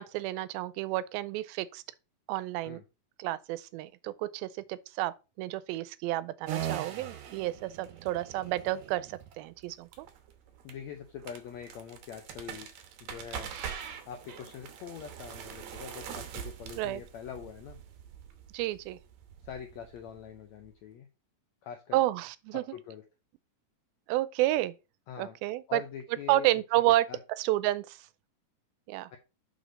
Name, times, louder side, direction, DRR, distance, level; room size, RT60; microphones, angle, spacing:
voice 1, 0.0-1.8 2.3-2.8 3.2-10.1 16.8-17.0 18.5-19.0 21.9-22.6 24.1-24.7 25.2-25.8 26.3-27.1 27.4-28.0 28.9-29.1, right 16 dB, 85° right, 2.4 m, -30 dB
sound 1, 6.5-20.7, right 9 dB, 70° right, 1.9 m, -43 dB
voice 2, 10.6-12.7 13.0-13.6 14.0-17.8 19.4-21.1 21.6-22.0 22.5-23.0 25.1-25.4 25.7-26.5 27.1-27.2 29.1-29.2, left 8 dB, 80° left, 1.6 m, -44 dB
6.1 x 5.1 x 5.2 m
omnidirectional pair, 4.2 m